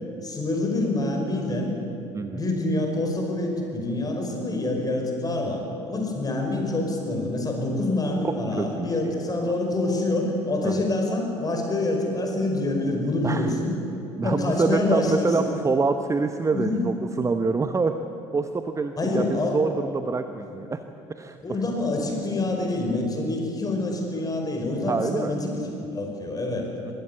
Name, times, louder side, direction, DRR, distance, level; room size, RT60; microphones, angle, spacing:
voice 1, 0.2-1.7 2.3-13.7 14.2-15.5 16.5-16.8 19.0-19.6 20.5-20.6 21.4-26.7, left 2 dB, 25° left, 2 dB, 5.4 m, -26 dB
voice 2, 8.2-9.3 10.6-10.9 13.2-13.5 14.2-18.0 18.3-20.8 21.2-21.4 24.9-25.4 26.8-26.9, right 4 dB, 20° right, 8 dB, 0.9 m, -26 dB
22.0 x 16.0 x 8.3 m, 2.8 s
figure-of-eight pair, 60°, 15 cm